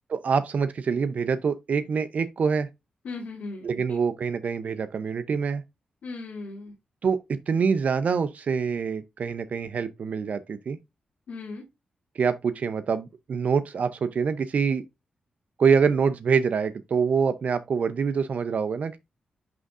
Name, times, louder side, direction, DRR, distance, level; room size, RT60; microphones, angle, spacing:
voice 1, 0.1-2.7 3.6-5.6 7.0-10.8 12.1-14.8 15.6-19.0, right 6 dB, 65° right, 0.6 m, -25 dB
voice 2, 3.0-4.0 6.0-6.7 11.3-11.6, left 3 dB, 85° left, 2.3 m, -37 dB
10.5 x 3.7 x 2.4 m
cardioid pair, 65°, 3 cm